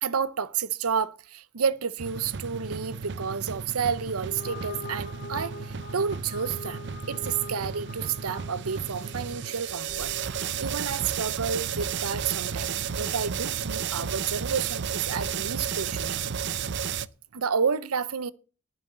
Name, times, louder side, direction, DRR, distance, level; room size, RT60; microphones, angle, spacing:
voice 1, 0.0-16.2 17.3-18.3, right 6 dB, 85° right, 0.8 m, -30 dB
sound 1, 2.0-17.1, right 7 dB, 55° right, 0.5 m, -33 dB
sound 2, 4.1-10.7, left 2 dB, 45° left, 1.7 m, -43 dB
11.0 x 7.0 x 7.9 m
head